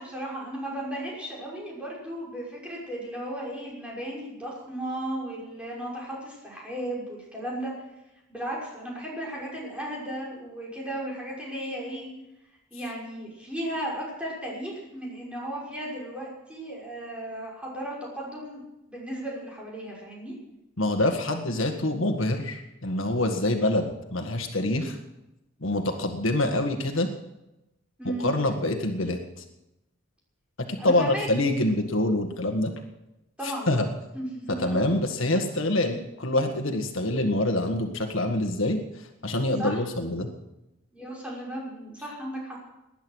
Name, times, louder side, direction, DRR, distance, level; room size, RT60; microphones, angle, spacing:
voice 1, 0.0-7.7 8.3-12.1 12.7-18.6 18.9-20.3 28.0-28.3 30.8-31.3 33.4-34.9 39.6-39.8 40.9-42.6, right 1 dB, 5° right, -4 dB, 6.1 m, -35 dB
voice 2, 20.8-25.0 25.6-27.1 28.1-29.2 30.7-32.7 33.4-33.9 34.5-38.8 39.2-40.3, left 1 dB, 75° left, 5 dB, 1.7 m, -26 dB
19.5 x 11.0 x 6.3 m, 0.92 s
head